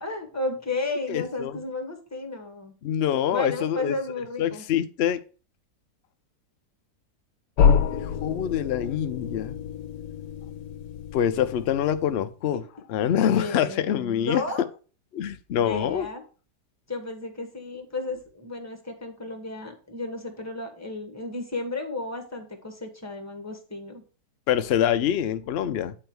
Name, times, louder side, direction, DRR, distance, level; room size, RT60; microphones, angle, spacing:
voice 1, 0.0-2.7 3.3-4.6 13.3-14.6 15.5-16.2 16.9-24.0, left 2 dB, 10° left, 1.2 m, -33 dB
voice 2, 1.1-1.6 2.8-4.0 4.4-5.2 7.9-9.6 11.1-12.6 12.9-14.4 15.1-16.1 24.5-25.9, left 10 dB, 90° left, 0.5 m, -25 dB
sound 1, 7.6-12.3, left 7 dB, 65° left, 1.0 m, -27 dB
8.7 x 3.4 x 6.0 m
omnidirectional pair, 1.8 m